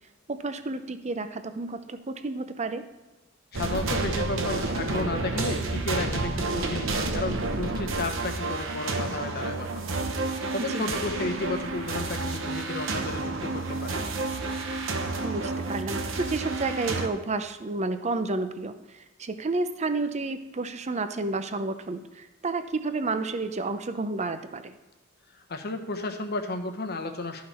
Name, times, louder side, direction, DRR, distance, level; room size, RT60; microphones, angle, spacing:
voice 1, 0.3-2.8 10.6-10.9 15.2-24.7, right 3 dB, 35° right, 9 dB, 0.6 m, -31 dB
voice 2, 3.5-9.8 10.5-14.0 25.5-27.4, left 2 dB, 55° left, 6 dB, 1.0 m, -33 dB
sound 1, 3.5-17.1, right 3 dB, 70° right, 0.9 m, -30 dB
12.0 x 5.8 x 4.3 m, 1.1 s
head